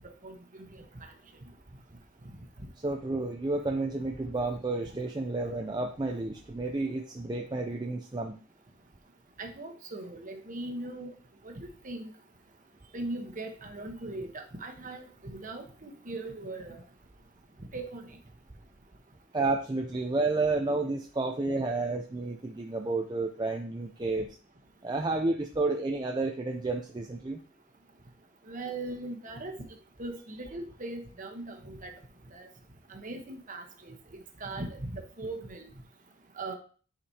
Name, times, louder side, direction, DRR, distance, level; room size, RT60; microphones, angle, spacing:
voice 1, 0.7-1.1 9.4-11.1 11.4-12.1 12.9-16.8 17.7-18.2 28.5-29.5 30.0-31.9 32.3-32.5 32.9-33.9 34.4-35.7 36.4-36.6, right 2 dB, 35° right, 4 dB, 1.1 m, -39 dB
voice 2, 2.8-8.4 19.3-24.4 24.8-27.4, right 3 dB, 20° right, 2 dB, 0.4 m, -31 dB
10.0 x 5.0 x 2.8 m, 0.41 s
head